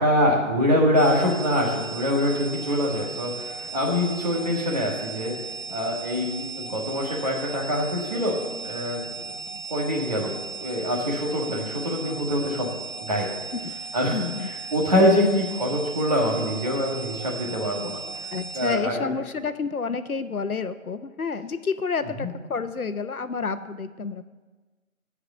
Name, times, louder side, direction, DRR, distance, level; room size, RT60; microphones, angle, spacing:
voice 1, 0.0-5.3 5.7-8.4 8.6-9.0 9.7-10.3 10.6-12.7 13.0-13.3 13.9-14.2 14.7-18.0 18.5-19.1 22.2-22.3, left 1 dB, 30° right, -3 dB, 1.6 m, -24 dB
sound 1, 1.0-18.8, right 4 dB, 75° right, 1.4 m, -36 dB
voice 2, 14.1-14.5 18.3-24.2, left 5 dB, 90° left, 11 dB, 0.9 m, -29 dB
14.0 x 4.9 x 6.8 m, 1.3 s
figure-of-eight pair, 165°, 42 cm